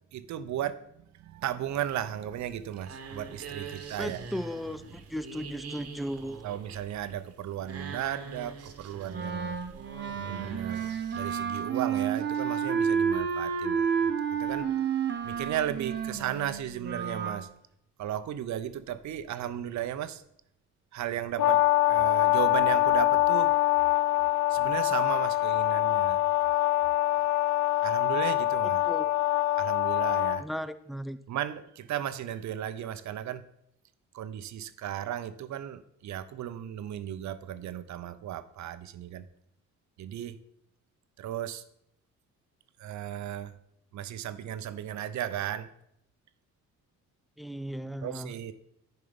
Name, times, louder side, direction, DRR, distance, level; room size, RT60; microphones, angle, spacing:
voice 1, 0.1-4.2 6.4-9.6 10.1-14.7 15.0-17.5 18.0-20.2 20.9-23.6 24.5-26.2 27.8-28.8 29.6-30.4 31.3-33.5 34.1-39.3 40.0-40.4 41.2-41.6 42.8-43.5 43.9-45.7 48.0-48.5, right 11 dB, 70° right, 0.7 m, -35 dB
sound 1, 2.3-11.4, right 5 dB, 50° right, 1.2 m, -44 dB
voice 2, 4.0-6.4 28.9-29.1 30.4-31.2 47.4-48.3, equal, ahead, 0.4 m, -36 dB
Wind instrument woodwind instrument, 9.1-17.4, right 7 dB, 35° right, 1.0 m, -30 dB
Brass instrument, 21.4-30.4, left 17 dB, 70° left, 0.5 m, -24 dB
10.5 x 4.5 x 5.2 m
cardioid pair, 90°, 30 cm